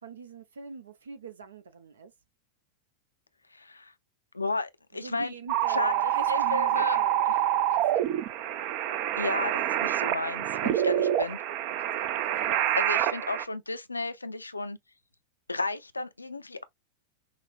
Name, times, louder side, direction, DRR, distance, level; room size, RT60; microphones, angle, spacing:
voice 1, 0.0-2.1 5.0-8.0 10.5-10.8 11.7-12.7, right 5 dB, 70° right, 0.8 m, -44 dB
voice 2, 3.5-3.9 4.3-5.3 5.7-7.0 7.3-7.4 9.2-11.4 12.5-14.8 15.5-16.6, left 3 dB, 80° left, 0.4 m, -33 dB
sound 1, 5.5-13.4, right 11 dB, 45° right, 0.5 m, -27 dB
5.7 x 2.1 x 2.4 m
figure-of-eight pair, 90°, 0 cm